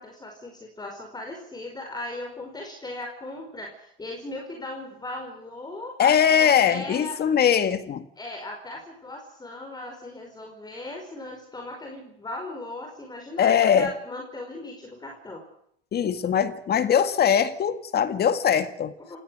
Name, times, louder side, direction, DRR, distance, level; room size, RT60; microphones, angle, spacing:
voice 1, 0.0-7.2 8.2-15.4 19.1-19.2, left 2 dB, 15° left, 2 dB, 5.0 m, -38 dB
voice 2, 6.0-8.1 13.4-13.9 15.9-18.9, left 8 dB, 35° left, 11 dB, 2.0 m, -21 dB
28.5 x 18.0 x 6.5 m, 0.69 s
supercardioid pair, 125°, 29 cm